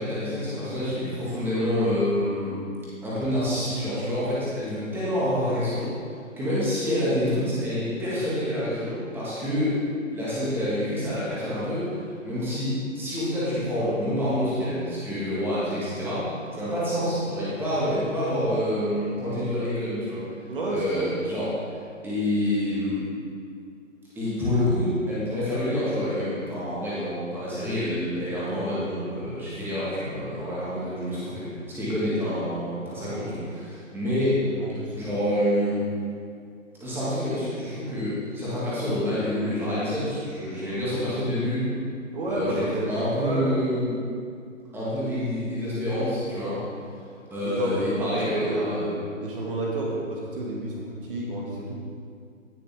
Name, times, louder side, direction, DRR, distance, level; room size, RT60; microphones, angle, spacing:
voice 1, 0.0-2.6 3.0-5.9 6.4-9.7 10.1-11.9 12.2-20.2 20.7-21.6 22.0-23.0 24.2-34.4 34.9-35.8 36.8-41.7 42.3-43.9 44.7-46.6 47.3-48.9, left 1 dB, 5° right, -10 dB, 2.4 m, -27 dB
voice 2, 20.5-21.1 34.6-35.0 42.1-43.6 47.4-51.8, right 1 dB, 40° right, -3 dB, 2.0 m, -30 dB
17.0 x 6.7 x 3.7 m, 2.4 s
figure-of-eight pair, 145°, 40 cm